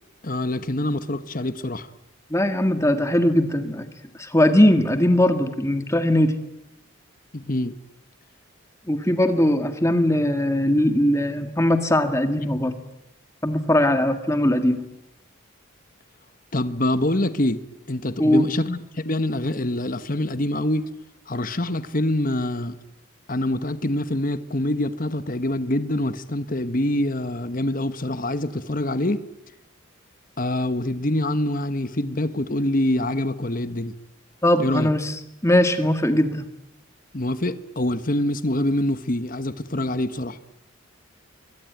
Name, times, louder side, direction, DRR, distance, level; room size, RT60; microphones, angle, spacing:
voice 1, 0.2-1.9 7.3-7.8 16.5-17.6 17.9-20.9 21.3-22.7 23.3-29.3 30.4-33.9 34.6-34.9 37.1-40.4, left 1 dB, 40° left, 11 dB, 1.3 m, -25 dB
voice 2, 2.3-3.9 4.2-6.3 8.9-12.7 13.4-14.9 18.2-18.5 34.4-35.2 35.4-36.4, left 1 dB, 15° left, 7 dB, 1.9 m, -20 dB
27.0 x 22.5 x 9.3 m, 0.86 s
head